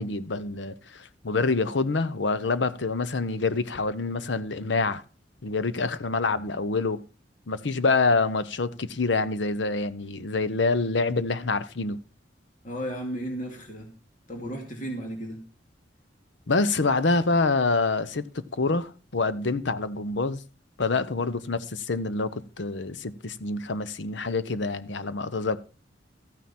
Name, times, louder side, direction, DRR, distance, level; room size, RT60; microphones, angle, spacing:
voice 1, 0.0-5.0 5.4-7.0 7.5-12.0 16.5-18.2 18.5-20.4 20.8-25.6, left 3 dB, 70° left, 0.8 m, -26 dB
voice 2, 12.6-13.9 14.3-15.4, equal, 45° left, 2.3 m, -34 dB
14.0 x 9.4 x 4.3 m
head